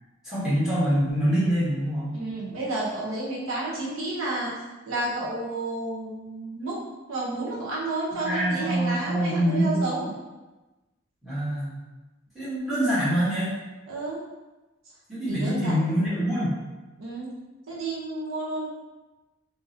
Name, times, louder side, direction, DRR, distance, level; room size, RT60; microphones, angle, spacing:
voice 1, 0.2-2.2 8.2-9.8 11.2-11.7 12.3-13.5 15.1-16.6, equal, ahead, -11 dB, 1.5 m, -25 dB
voice 2, 2.1-4.5 4.9-6.8 7.1-10.1 13.9-14.2 15.3-15.9 17.0-17.3 17.7-18.7, right 2 dB, 80° right, -6 dB, 1.1 m, -31 dB
3.6 x 3.1 x 2.9 m, 1.1 s
head